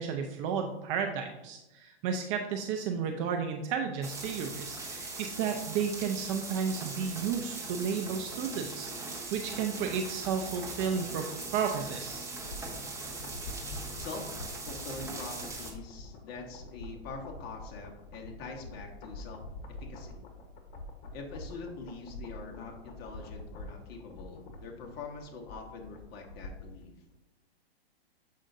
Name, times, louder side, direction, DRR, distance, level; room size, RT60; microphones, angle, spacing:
voice 1, 0.0-12.3, right 6 dB, 30° right, 4 dB, 0.5 m, -33 dB
sound 1, 4.0-15.7, right 3 dB, 10° right, 1.0 m, -40 dB
sound 2, 12.1-26.8 27.1-27.2, left 2 dB, 55° left, 1.3 m, -46 dB
voice 2, 14.0-14.3 14.6-19.4 19.7-20.2 21.1-26.9, left 4 dB, 30° left, 2 dB, 1.0 m, -44 dB
7.4 x 5.0 x 2.6 m, 0.97 s
hypercardioid pair, 125°, 31 cm